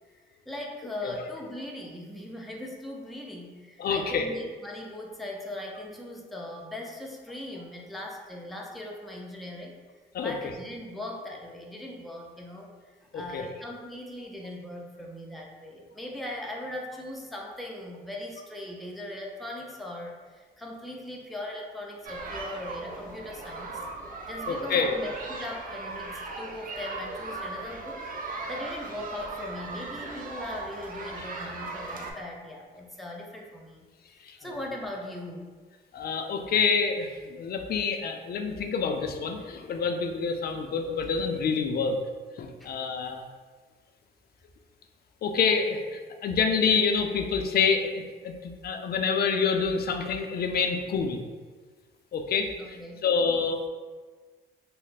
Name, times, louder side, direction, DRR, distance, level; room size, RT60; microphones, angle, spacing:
voice 1, 0.1-9.8 10.2-23.9 24.3-28.0 28.5-33.8 34.1-35.5 42.6-42.7 52.6-53.1, left 1 dB, ahead, -2 dB, 0.5 m, -39 dB
voice 2, 3.8-4.2 10.1-10.3 13.1-13.4 24.5-25.0 34.2-34.6 35.9-42.0 42.4-43.2 45.2-51.2 52.1-52.5 53.0-53.6, left 5 dB, 50° left, 5 dB, 0.5 m, -27 dB
sound 1, 22.0-32.1, right 3 dB, 45° right, 0.5 m, -38 dB
3.1 x 2.1 x 4.0 m, 1.4 s
cardioid pair, 90°, 20 cm